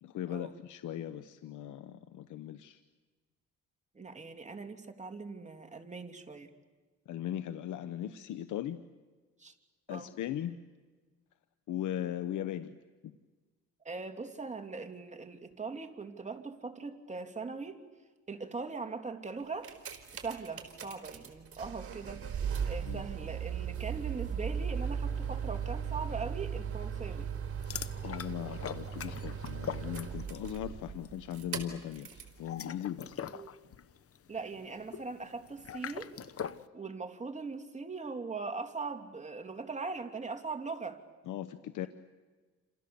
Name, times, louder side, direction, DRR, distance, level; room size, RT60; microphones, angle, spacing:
voice 1, 0.0-2.8 7.1-8.8 9.9-10.6 11.7-12.8 13.0-13.1 22.8-23.0 28.0-33.2 41.3-41.9, left 11 dB, 80° left, 11 dB, 1.1 m, -38 dB
voice 2, 3.9-6.5 9.4-9.5 9.9-10.1 13.8-17.8 18.3-19.7 20.1-22.2 22.6-27.3 33.3-33.6 34.3-36.1 36.7-41.0, right 4 dB, 25° right, 6 dB, 2.8 m, -40 dB
sound 1, 19.4-32.4 33.1-33.2, right 7 dB, 50° right, 4.1 m, -37 dB
sound 2, 27.6-30.5 30.8-31.1 32.3-36.7, left 8 dB, 50° left, 1.1 m, -42 dB
29.0 x 27.0 x 7.1 m, 1.3 s
cardioid pair, 90°, 30 cm